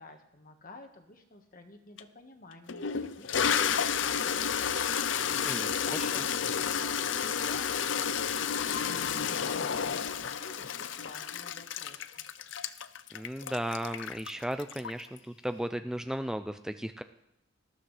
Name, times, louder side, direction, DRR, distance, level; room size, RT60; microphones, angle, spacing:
voice 1, 0.0-5.3 5.5-12.2, left 2 dB, 50° left, 5 dB, 1.5 m, -51 dB
Toilet flush, 2.0-2.1 2.7-15.2, left 7 dB, 80° left, 0.6 m, -31 dB
voice 2, 13.1-17.0, right 1 dB, 5° right, 9 dB, 0.4 m, -35 dB
19.0 x 13.5 x 3.3 m, 0.84 s
head